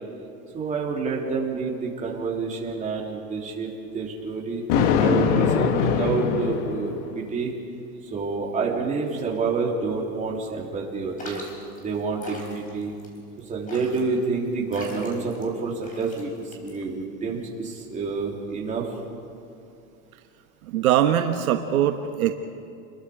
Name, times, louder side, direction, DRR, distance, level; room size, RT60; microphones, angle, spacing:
voice 1, 0.5-4.6 5.0-7.5 8.0-11.4 11.8-12.9 13.5-18.9, right 4 dB, 15° right, -2 dB, 3.2 m, -28 dB
Thunder, 4.7-7.2, left 7 dB, 40° left, 1.4 m, -22 dB
sound 1, 11.2-17.1, left 1 dB, 15° left, 4.4 m, -43 dB
voice 2, 20.7-22.3, right 10 dB, 65° right, 6 dB, 1.3 m, -22 dB
29.0 x 21.5 x 5.0 m, 2.5 s
supercardioid pair, 150°, 45 cm